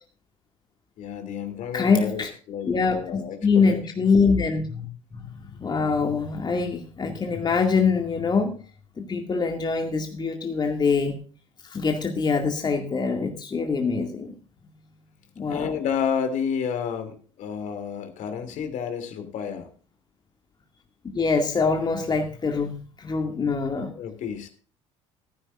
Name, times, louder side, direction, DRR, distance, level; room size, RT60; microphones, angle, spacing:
voice 1, 1.0-3.8 15.5-19.7 23.9-24.5, left 7 dB, 50° left, 7 dB, 2.9 m, -30 dB
voice 2, 1.7-2.3 2.6-8.6 9.0-11.2 11.7-14.3 15.4-15.7 21.0-23.9, left 4 dB, 25° left, 3 dB, 2.2 m, -24 dB
14.5 x 14.0 x 2.5 m, 0.40 s
figure-of-eight pair, 60°, 16 cm